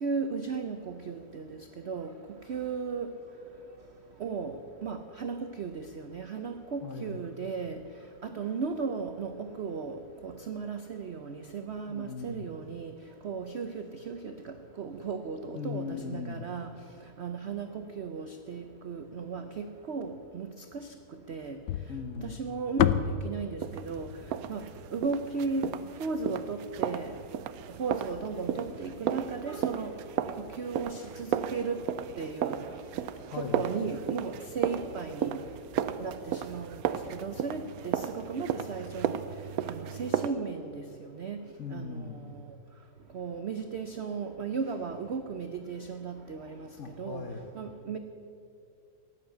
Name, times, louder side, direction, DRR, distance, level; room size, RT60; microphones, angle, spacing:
voice 1, 0.0-1.6 1.9-2.1 2.5-3.1 4.2-7.8 8.2-12.9 13.2-16.7 17.2-20.5 20.7-20.9 21.3-21.6 22.2-22.9 23.2-24.1 24.5-24.6 24.9-25.6 26.0-27.1 27.8-30.0 30.4-31.8 32.2-32.6 33.4-35.4 36.0-36.8 37.1-39.2 39.6-41.4 41.7-42.0 43.1-46.7 47.0-47.2 47.6-48.0, right 5 dB, 85° right, 8 dB, 0.5 m, -35 dB
voice 2, 6.8-7.3 11.9-12.5 15.5-16.5 21.9-22.4 33.3-33.7 41.6-42.5 46.8-47.6, left 5 dB, 50° left, 4 dB, 1.0 m, -39 dB
sound 1, 21.7-26.0, left 9 dB, 80° left, 1.2 m, -31 dB
sound 2, 23.6-40.3, right 9 dB, 70° right, 0.9 m, -34 dB
14.0 x 9.8 x 7.9 m, 2.5 s
omnidirectional pair, 2.0 m